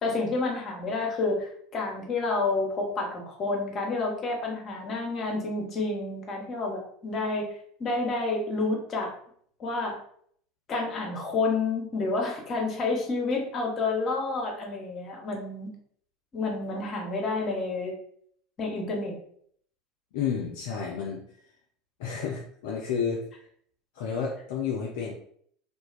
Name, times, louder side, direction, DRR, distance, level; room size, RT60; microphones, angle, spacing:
voice 1, 0.0-7.5 7.8-9.1 9.6-10.0 10.7-15.7 16.3-17.9 18.6-19.2, left 3 dB, 35° left, -1 dB, 0.8 m, -29 dB
voice 2, 20.1-21.2 22.0-23.2 23.9-25.1, left 6 dB, 65° left, -2 dB, 0.4 m, -31 dB
2.4 x 2.2 x 2.3 m, 0.62 s
figure-of-eight pair, 75°, 0 cm